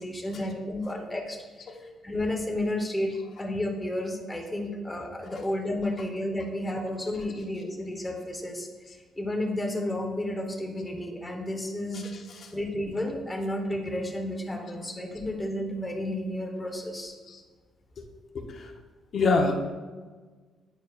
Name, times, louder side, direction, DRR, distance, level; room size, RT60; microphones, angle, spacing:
voice 1, 0.0-1.8 2.0-8.7 9.2-12.1 12.5-17.1, left 1 dB, 15° left, 1 dB, 1.1 m, -32 dB
voice 2, 3.1-3.5 5.2-5.4 5.8-5.9 7.2-7.3 8.9-9.0 11.9-12.5 14.6-14.7 17.0-17.4 18.0-18.1 18.3-18.7 19.1-19.6, left 3 dB, 55° left, 3 dB, 0.9 m, -30 dB
9.1 x 4.5 x 2.4 m, 1.4 s
cardioid pair, 90°, 0 cm